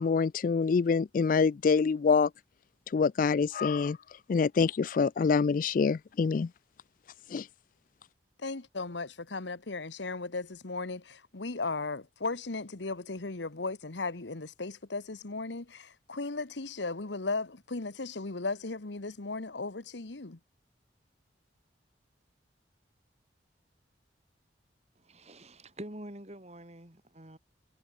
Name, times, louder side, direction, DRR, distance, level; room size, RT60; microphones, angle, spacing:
voice 1, 0.0-2.3 2.9-4.0 4.3-6.5 7.3-7.5, left 5 dB, 45° left, 0.3 m, -26 dB
voice 2, 8.4-20.4, left 3 dB, 75° left, 1.3 m, -36 dB
voice 3, 24.9-27.4, right 1 dB, 35° right, 3.3 m, -46 dB
head